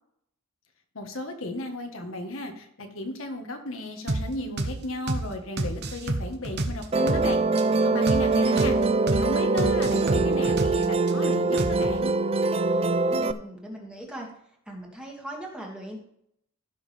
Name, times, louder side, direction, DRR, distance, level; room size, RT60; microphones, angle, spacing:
voice 1, 0.9-7.4 7.8-8.8 9.1-12.2, left 1 dB, 60° left, 3 dB, 1.5 m, -35 dB
sound 1, 4.1-4.3 4.6-4.8 5.1-5.3 5.6-7.3 7.6-7.7 8.1-8.3 8.6-8.8 9.1-9.3 9.6-11.1 11.6-12.0, right 2 dB, 50° right, 1.1 m, -28 dB
Musical instrument, 6.9-13.3, right 3 dB, 25° right, 0.4 m, -23 dB
voice 2, 8.2-8.9 13.1-14.3 14.7-16.0, right 1 dB, 5° right, -1 dB, 2.0 m, -38 dB
15.5 x 6.4 x 3.4 m, 0.73 s
head